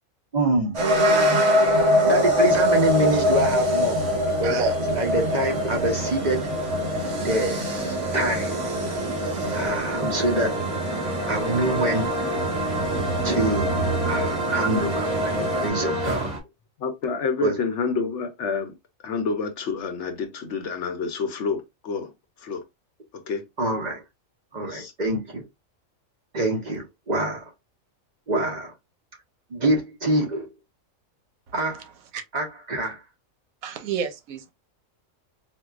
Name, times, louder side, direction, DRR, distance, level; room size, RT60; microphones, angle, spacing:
voice 1, 0.3-0.9 2.0-4.0 4.4-4.6 4.9-6.5 7.2-7.6 8.1-8.6 9.5-10.6 11.3-12.1 13.2-13.7 14.0-16.3 17.4-17.5 23.6-24.0 24.5-25.4 26.3-27.5 28.3-28.7 29.5-30.5 31.5-31.9 32.3-33.0, right 1 dB, 45° right, 0.7 m, -25 dB
Ambient Foley - Garage Like, 0.7-15.7, left 1 dB, 60° right, 1.3 m, -25 dB
voice 2, 1.0-1.4 2.2-2.3 3.1-3.2 4.4-4.8 31.6-31.7 32.1-32.2 33.6-34.5, right 8 dB, 85° right, 1.1 m, -31 dB
sound 1, 1.7-16.4, right 2 dB, 25° right, 1.4 m, -30 dB
voice 3, 16.8-18.8 19.0-22.1 22.4-22.6 23.1-23.5 24.6-24.9, left 5 dB, 65° left, 0.9 m, -28 dB
4.4 x 2.2 x 2.3 m
omnidirectional pair, 1.4 m